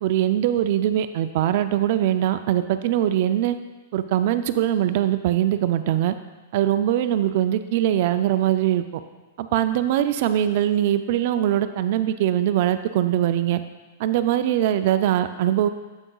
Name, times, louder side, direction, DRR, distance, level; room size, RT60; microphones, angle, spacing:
voice 1, 0.0-3.6 3.9-6.1 6.5-8.8 9.4-13.6 14.0-15.7, right 11 dB, 55° right, 10 dB, 0.3 m, -22 dB
7.9 x 6.1 x 2.3 m, 1.3 s
hypercardioid pair, 125°, 0 cm